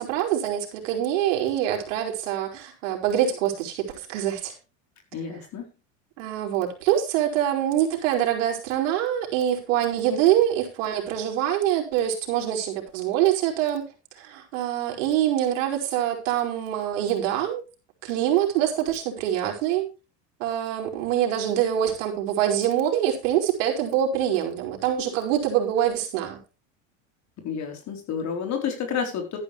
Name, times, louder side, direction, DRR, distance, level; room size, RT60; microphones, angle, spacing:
voice 1, 0.0-4.5 6.2-13.8 14.1-17.6 18.0-19.9 20.4-26.4, right 11 dB, 75° right, 5.1 m, -25 dB
voice 2, 5.1-5.6 27.4-29.4, left 7 dB, 45° left, 4.2 m, -30 dB
13.0 x 10.5 x 3.4 m
supercardioid pair, 115°, 38 cm